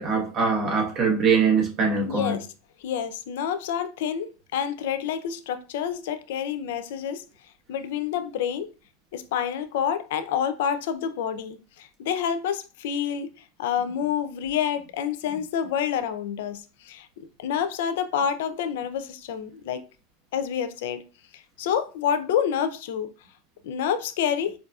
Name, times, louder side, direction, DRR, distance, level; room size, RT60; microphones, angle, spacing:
voice 1, 0.0-2.4, right 5 dB, 35° right, 1.1 m, -22 dB
voice 2, 2.1-2.5 2.8-7.2 7.7-8.7 9.1-17.1 17.4-19.8 20.3-21.0 21.3-23.1 23.6-24.5, left 8 dB, 70° left, 0.4 m, -28 dB
4.7 x 2.5 x 2.3 m
supercardioid pair, 150°, 0 cm